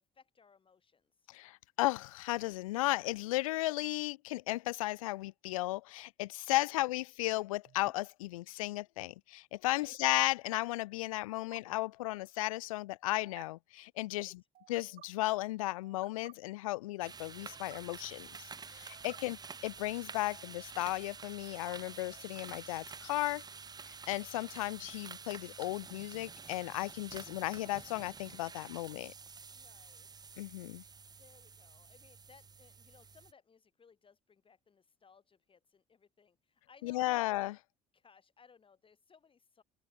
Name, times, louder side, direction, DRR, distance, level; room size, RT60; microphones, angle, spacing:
voice 1, 0.0-1.3 9.7-9.9 14.1-14.4 19.0-19.3 29.5-30.4 31.2-37.2 37.9-39.6, left 6 dB, 30° left, 1.8 m, -63 dB
voice 2, 1.3-14.3 14.7-19.4 19.6-23.4 24.1-29.1 30.4-30.8 36.8-37.5, left 19 dB, 85° left, 0.5 m, -35 dB
sound 1, 7.7-7.9 9.7-10.0 11.3-11.6 13.2-13.4 14.5-15.1 15.8-16.3 17.3-17.8 18.7-19.2 20.2-20.8 21.5-22.3, right 13 dB, 60° right, 6.4 m, -58 dB
sound 2, 17.0-33.3, right 5 dB, 25° right, 0.7 m, -49 dB
open air
hypercardioid pair, 65°, 17 cm